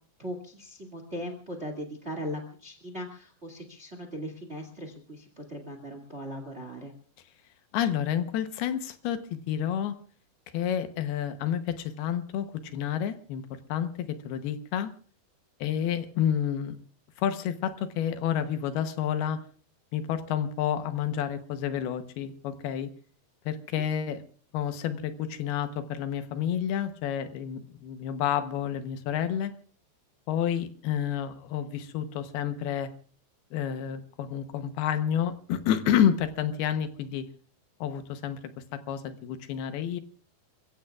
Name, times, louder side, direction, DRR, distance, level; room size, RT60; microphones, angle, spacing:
voice 1, 0.2-6.9, equal, 25° right, 4 dB, 1.4 m, -39 dB
voice 2, 7.7-10.0 10.5-13.4 13.7-14.9 15.6-16.8 17.2-19.4 19.9-22.9 23.5-24.2 24.5-29.5 30.3-32.9 33.5-37.3 37.8-38.4 38.7-40.0, left 9 dB, 80° left, 9 dB, 2.9 m, -29 dB
29.0 x 15.5 x 2.4 m, 0.43 s
omnidirectional pair, 4.6 m